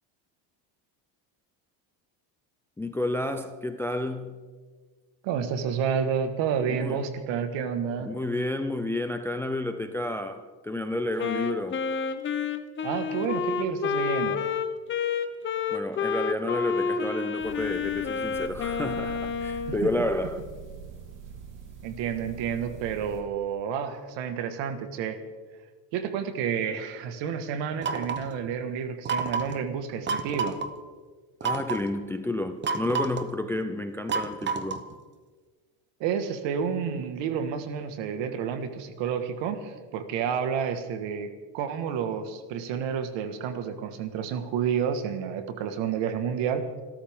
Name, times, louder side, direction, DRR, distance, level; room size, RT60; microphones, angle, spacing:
voice 1, 2.8-4.4 6.7-7.0 8.0-11.8 15.7-20.4 31.4-34.8, left 1 dB, 5° left, 0.4 m, -30 dB
voice 2, 5.2-8.1 12.8-14.4 19.8-19.9 21.8-25.2 25.9-30.6 36.0-46.7, right 7 dB, 70° right, 1.8 m, -30 dB
Wind instrument woodwind instrument, 11.2-19.8, left 6 dB, 25° left, 0.8 m, -29 dB
sound 1, 17.4-23.2, right 6 dB, 45° right, 3.0 m, -44 dB
sound 2, 27.8-28.3 29.1-29.6 30.1-30.7 31.4-31.9 32.6-33.3 34.1-34.9, right 5 dB, 25° right, 0.9 m, -29 dB
26.5 x 13.0 x 3.7 m
cardioid pair, 155°, 45 cm